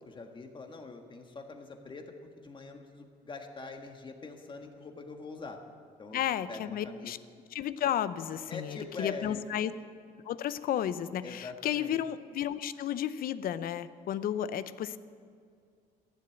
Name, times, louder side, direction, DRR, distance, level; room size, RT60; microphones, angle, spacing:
voice 1, 0.0-2.1 2.4-5.6 6.0-6.2 6.5-7.1 8.5-9.4 11.2-12.0, left 3 dB, 30° left, 4 dB, 1.6 m, -44 dB
voice 2, 6.1-7.2 7.5-9.7 10.3-15.0, left 10 dB, 60° left, 14 dB, 0.6 m, -33 dB
14.5 x 7.6 x 9.1 m, 2.2 s
cardioid pair, 110°, 17 cm